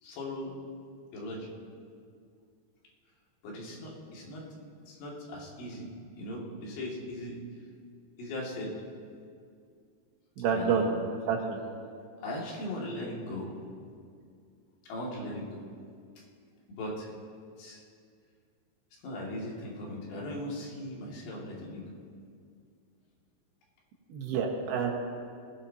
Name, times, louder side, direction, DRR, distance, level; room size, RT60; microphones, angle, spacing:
voice 1, 0.0-0.5 1.1-1.5 3.4-4.4 4.9-5.9 6.1-7.4 8.2-8.7 10.5-10.9 12.2-13.5 14.8-15.6 16.2-16.3 16.7-17.1 17.6-17.8 19.0-21.8, left 1 dB, 75° left, -4 dB, 4.4 m, -38 dB
voice 2, 10.4-10.9 11.3-11.6 24.1-24.9, right 6 dB, 75° right, 0 dB, 3.5 m, -28 dB
20.5 x 16.0 x 2.8 m, 2.2 s
omnidirectional pair, 4.9 m